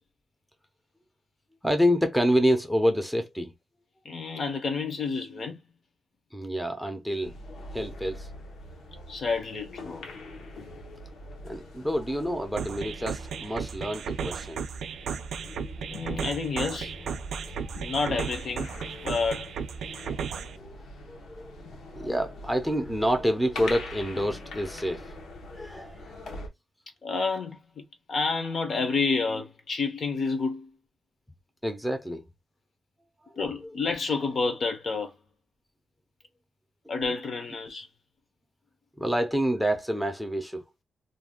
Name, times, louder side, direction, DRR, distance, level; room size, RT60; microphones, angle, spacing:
voice 1, 1.6-3.5 6.3-7.3 7.7-8.3 11.4-14.6 17.4-17.9 20.6-21.6 21.9-25.1 25.5-26.2 31.6-32.2 33.3-33.7 39.0-40.6, equal, ahead, 0.5 m, -28 dB
voice 2, 4.0-5.6 9.1-10.0 15.9-16.9 17.7-18.7 19.0-19.5 19.9-20.1 27.0-27.8 28.1-30.7 33.4-35.1 36.9-37.9, left 4 dB, 45° left, 0.6 m, -29 dB
sound 1, 7.2-26.5, left 1 dB, 85° left, 0.8 m, -43 dB
sound 2, 12.6-20.6, right 6 dB, 70° right, 0.4 m, -35 dB
2.5 x 2.2 x 3.5 m
wide cardioid pair, 160°, 0 cm